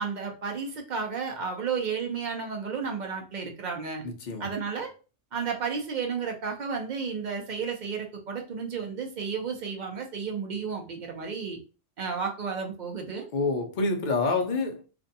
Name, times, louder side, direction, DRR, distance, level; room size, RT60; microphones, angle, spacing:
voice 1, 0.0-4.0 4.4-4.9 5.3-11.6 12.0-13.3, right 5 dB, 55° right, 0.5 m, -32 dB
voice 2, 4.0-4.5 13.3-14.8, left 3 dB, 55° left, 0.6 m, -27 dB
2.5 x 2.2 x 2.6 m
omnidirectional pair, 1.2 m